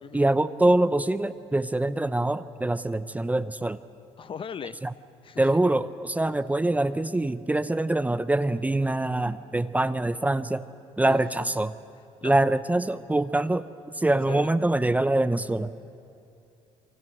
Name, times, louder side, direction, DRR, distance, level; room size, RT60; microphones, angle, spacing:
voice 1, 0.1-3.8 4.8-4.9 5.4-10.7 11.0-11.7 12.2-13.7 13.9-15.7, right 2 dB, 10° right, 13 dB, 0.7 m, -24 dB
voice 2, 4.2-4.8 5.2-5.4 11.0-11.5 12.2-12.3 14.3-14.5, left 7 dB, 40° left, 13 dB, 0.8 m, -38 dB
27.5 x 24.0 x 6.2 m, 2.6 s
supercardioid pair, 80°, 13 cm